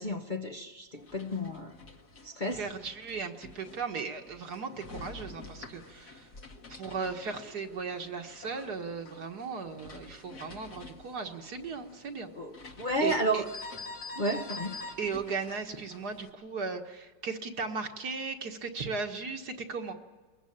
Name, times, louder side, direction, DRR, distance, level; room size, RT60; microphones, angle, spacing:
voice 1, 0.0-1.7 2.2-2.6 12.3-13.5 14.2-14.8, right 1 dB, 35° left, 1.0 m, -32 dB
sound 1, 1.0-16.3, left 3 dB, 60° left, 2.4 m, -47 dB
voice 2, 2.6-6.3 6.7-12.3 13.0-13.4 15.0-19.9, right 5 dB, 60° right, 2.1 m, -36 dB
21.5 x 21.5 x 8.8 m
omnidirectional pair, 2.0 m